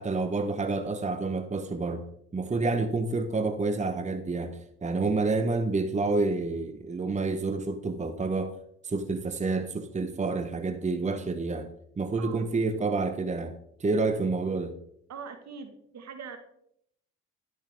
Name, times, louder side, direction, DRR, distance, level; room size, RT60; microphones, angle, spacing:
voice 1, 0.0-2.0 2.3-8.6 8.8-11.7 12.0-14.7, right 3 dB, 25° right, 0.9 m, -29 dB
voice 2, 15.1-16.4, right 6 dB, 60° right, 1.5 m, -42 dB
10.5 x 6.5 x 3.4 m
hypercardioid pair, 55°, 30 cm